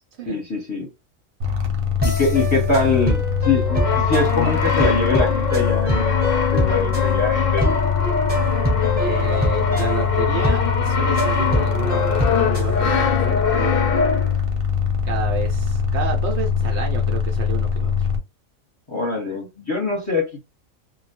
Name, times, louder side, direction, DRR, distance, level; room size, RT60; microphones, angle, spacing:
voice 1, 0.3-0.9 2.0-7.8 18.9-20.4, left 3 dB, 25° left, 0.9 m, -23 dB
sound 1, 1.4-18.2, left 6 dB, 85° right, 1.0 m, -23 dB
sound 2, 2.0-12.7, left 1 dB, 10° right, 0.8 m, -26 dB
Brass instrument, 3.7-14.5, left 5 dB, 60° left, 0.6 m, -24 dB
voice 2, 9.0-14.0 15.0-18.1, right 4 dB, 65° right, 0.8 m, -30 dB
2.2 x 2.2 x 2.8 m
omnidirectional pair, 1.4 m